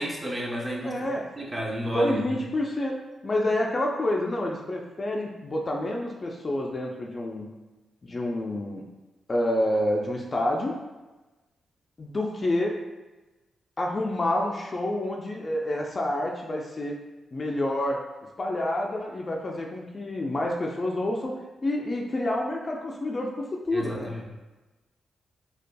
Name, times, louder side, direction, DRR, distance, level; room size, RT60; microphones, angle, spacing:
voice 1, 0.0-2.4 23.7-24.2, equal, 20° right, -2 dB, 0.7 m, -32 dB
voice 2, 0.8-1.3 1.9-3.0 3.2-7.5 8.0-8.8 9.3-10.8 12.0-12.8 13.8-17.0 17.3-18.0 18.4-24.1, left 1 dB, 30° left, 0 dB, 0.4 m, -28 dB
5.1 x 2.3 x 2.2 m, 1.1 s
cardioid pair, 115°, 0 cm